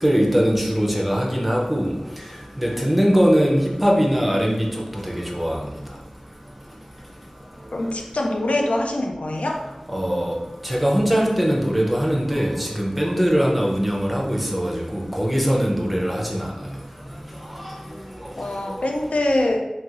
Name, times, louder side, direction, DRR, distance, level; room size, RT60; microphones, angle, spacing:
voice 1, 0.0-1.9 2.6-4.7 5.1-5.6 9.9-10.4 10.6-16.5 17.6-17.7, equal, ahead, -2 dB, 0.6 m, -21 dB
voice 2, 7.7-9.6 18.4-19.6, left 1 dB, 85° left, 1 dB, 0.3 m, -23 dB
3.0 x 2.6 x 2.5 m, 1.0 s
wide cardioid pair, 45°, 2 cm